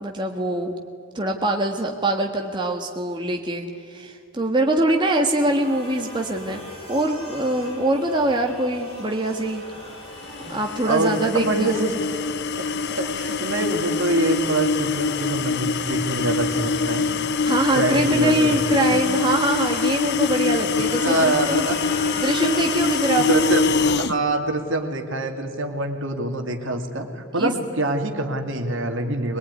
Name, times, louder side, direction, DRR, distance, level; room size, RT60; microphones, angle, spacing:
voice 1, 0.0-0.7 1.1-9.6 10.5-11.7 17.4-21.7 22.2-23.5 27.4-27.5, right 1 dB, 20° right, 1 dB, 1.5 m, -23 dB
sound 1, 5.4-22.9, equal, 25° left, 7.5 m, -41 dB
sound 2, 10.2-24.2, left 5 dB, 50° left, 0.8 m, -24 dB
voice 2, 10.8-11.9 12.6-17.1 17.7-18.6 18.9-19.0 21.0-21.8 23.3-29.4, right 2 dB, 60° right, 5 dB, 2.5 m, -25 dB
22.5 x 21.5 x 9.6 m, 2.4 s
head